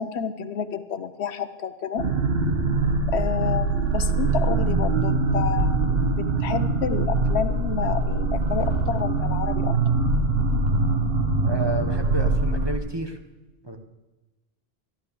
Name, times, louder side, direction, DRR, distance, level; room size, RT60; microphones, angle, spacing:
voice 1, 0.0-2.0 3.1-9.9, left 7 dB, 75° left, 11 dB, 1.1 m, -30 dB
sound 1, 2.0-12.8, right 3 dB, 65° right, 1.3 m, -23 dB
voice 2, 11.4-13.2 13.6-13.8, right 1 dB, 25° right, 5 dB, 1.1 m, -31 dB
12.5 x 11.5 x 6.8 m, 1.1 s
omnidirectional pair, 1.1 m